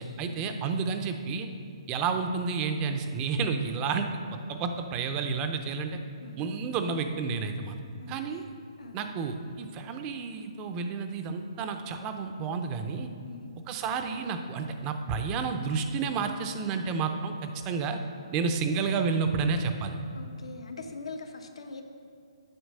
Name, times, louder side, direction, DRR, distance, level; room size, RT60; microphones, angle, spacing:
voice 1, 0.0-1.5 1.9-6.0 6.4-7.8 8.1-8.4 8.9-13.1 13.7-18.0 18.3-20.0, right 5 dB, 20° right, 6 dB, 0.5 m, -30 dB
voice 2, 8.0-8.4 8.8-9.0 13.3-13.5 20.1-21.8, left 3 dB, 85° left, 5 dB, 1.0 m, -43 dB
8.0 x 5.8 x 6.6 m, 2.4 s
hypercardioid pair, 160°, 3 cm